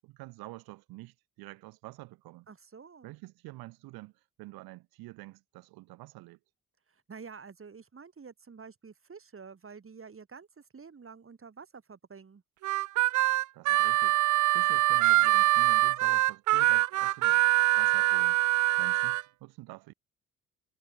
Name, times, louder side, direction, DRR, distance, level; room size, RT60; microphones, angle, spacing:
voice 1, 0.0-2.5 3.0-6.4 13.5-17.4 17.7-18.4 18.8-19.9, right 21 dB, 75° right, 7.8 m, -47 dB
voice 2, 2.5-3.1 6.9-12.4, right 5 dB, 35° right, 5.5 m, -49 dB
Harmonica, 12.6-19.2, right 16 dB, 50° right, 0.6 m, -24 dB
hypercardioid pair, 50°, 37 cm